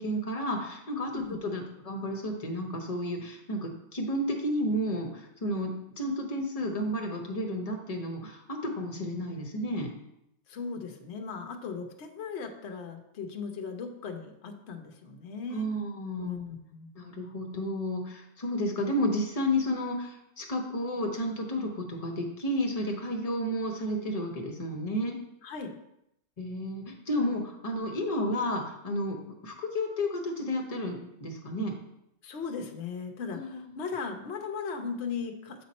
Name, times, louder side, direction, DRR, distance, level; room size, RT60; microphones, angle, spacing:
voice 1, 0.0-8.4 8.7-9.9 15.5-16.3 16.9-25.2 26.4-29.2 29.4-31.7 33.3-33.7, equal, 30° left, 1 dB, 1.0 m, -32 dB
voice 2, 10.5-15.7 16.2-16.9 25.4-25.8 32.2-35.6, left 5 dB, 55° left, 4 dB, 1.0 m, -37 dB
7.7 x 4.2 x 4.2 m, 0.81 s
omnidirectional pair, 1.4 m